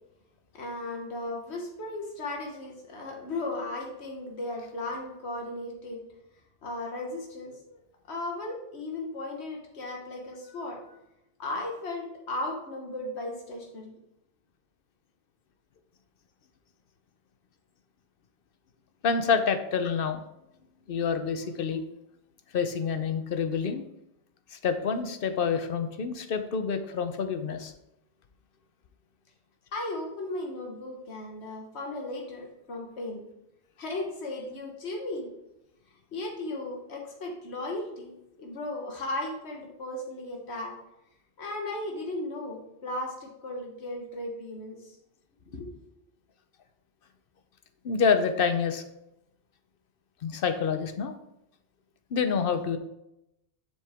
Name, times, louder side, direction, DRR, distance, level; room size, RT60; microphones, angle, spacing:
voice 1, 0.5-6.0 6.6-7.8 8.1-11.0 11.4-14.0 29.7-33.3 33.8-35.3 36.1-38.1 38.4-40.7 41.4-45.0 45.5-45.8, left 2 dB, 85° left, 1 dB, 1.5 m, -36 dB
voice 2, 19.0-20.2 20.9-21.8 22.5-23.8 24.5-27.7 47.8-48.8 50.2-51.1 52.1-52.8, left 6 dB, 60° left, 8 dB, 0.9 m, -27 dB
7.4 x 5.8 x 3.5 m, 0.86 s
omnidirectional pair, 1.1 m